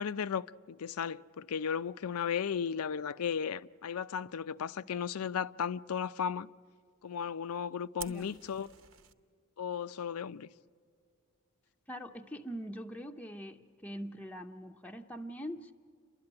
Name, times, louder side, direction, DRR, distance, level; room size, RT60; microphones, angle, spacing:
voice 1, 0.0-6.5 7.0-8.7 9.6-10.5, left 7 dB, 80° left, 0.5 m, -35 dB
Fire, 8.0-9.1, right 9 dB, 65° right, 1.0 m, -47 dB
voice 2, 8.1-8.4 11.9-15.7, equal, 5° left, 0.6 m, -43 dB
29.5 x 12.5 x 9.7 m
head